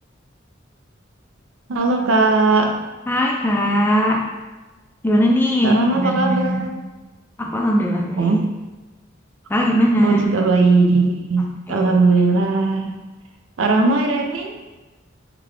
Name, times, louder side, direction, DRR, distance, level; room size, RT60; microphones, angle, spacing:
voice 1, 1.7-2.7 5.6-6.7 8.2-8.4 10.0-12.9 13.6-14.6, right 3 dB, 85° right, 3 dB, 0.5 m, -18 dB
voice 2, 3.1-4.3 5.0-6.6 7.4-8.4 9.5-10.2 11.7-12.0, equal, 10° left, 0 dB, 0.3 m, -19 dB
3.7 x 2.3 x 3.1 m, 1.2 s
head